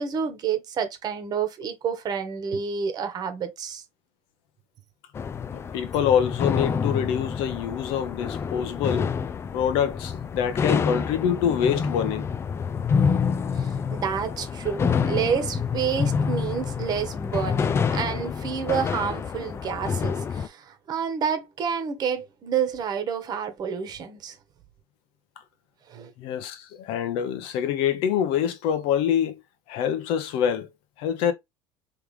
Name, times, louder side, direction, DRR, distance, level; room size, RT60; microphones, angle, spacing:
voice 1, 0.0-3.8 13.5-24.4 25.9-26.1, right 7 dB, 45° right, 1.2 m, -29 dB
sound 1, 5.1-20.5, left 6 dB, 25° left, 0.4 m, -27 dB
voice 2, 5.5-9.1 9.5-12.3 26.2-29.4 29.7-30.7 31.0-31.3, left 8 dB, 70° left, 1.0 m, -25 dB
3.5 x 3.3 x 3.2 m
supercardioid pair, 100°, 10 cm